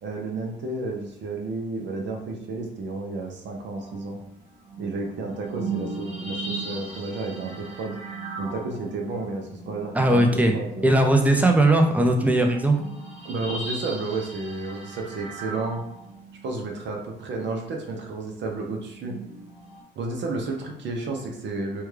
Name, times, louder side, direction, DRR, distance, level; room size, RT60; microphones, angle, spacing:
voice 1, 0.0-4.2 4.8-8.0 8.4-10.9 13.2-15.8 16.4-19.2 20.0-21.8, right 3 dB, 65° right, 1 dB, 0.7 m, -32 dB
sound 1, 3.8-10.9 11.3-11.4 11.7-16.7 18.9-19.8, right 3 dB, 35° right, 0.9 m, -38 dB
voice 2, 9.9-10.5 10.8-12.8, right 1 dB, 5° right, 3 dB, 0.5 m, -19 dB
3.4 x 2.3 x 3.2 m, 0.79 s
cardioid pair, 90°, 20 cm